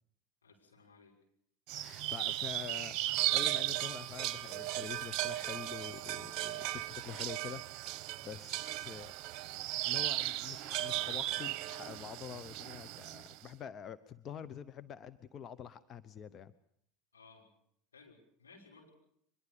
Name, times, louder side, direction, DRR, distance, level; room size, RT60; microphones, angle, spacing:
voice 1, 0.4-1.1 17.1-17.5 17.9-18.9, left 4 dB, 85° left, 0 dB, 5.9 m, -59 dB
sound 1, 1.7-13.4, right 15 dB, 50° right, 0.9 m, -36 dB
voice 2, 1.8-3.0 3.3-9.1 9.8-16.5, left 8 dB, 35° left, 13 dB, 1.0 m, -46 dB
24.0 x 21.5 x 6.8 m, 0.67 s
hypercardioid pair, 80°, 0 cm